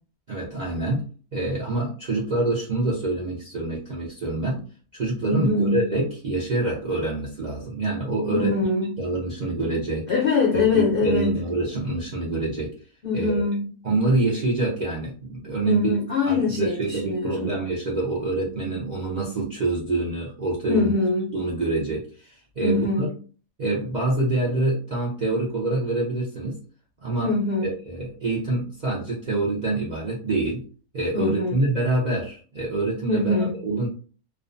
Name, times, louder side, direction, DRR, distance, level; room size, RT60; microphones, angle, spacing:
voice 1, 0.3-1.0 1.3-4.6 4.9-8.5 9.0-10.1 10.5-12.7 13.1-13.5 13.8-16.0 16.2-20.9 21.3-23.1 23.6-26.6 27.0-27.3 27.6-30.6 30.9-33.9, right 2 dB, 65° right, 0.4 m, -26 dB
voice 2, 5.3-5.9 8.3-9.0 10.1-11.4 13.0-13.7 15.6-17.5 20.7-21.3 22.6-23.1 27.2-27.7 31.1-31.6 33.1-33.5, left 3 dB, 65° left, 0.5 m, -23 dB
2.5 x 2.2 x 2.5 m
omnidirectional pair, 1.6 m